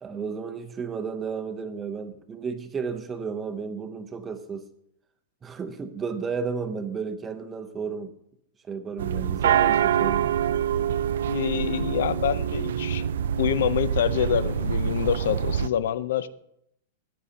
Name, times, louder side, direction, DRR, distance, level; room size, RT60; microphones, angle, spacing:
voice 1, 0.0-4.7 5.4-8.1 8.6-10.3, right 5 dB, 10° right, 0.7 m, -33 dB
sound 1, 9.0-15.7, right 9 dB, 75° right, 0.4 m, -25 dB
voice 2, 11.3-13.1 13.4-16.3, left 9 dB, 65° left, 0.6 m, -26 dB
15.0 x 9.4 x 2.8 m
supercardioid pair, 170°, 0 cm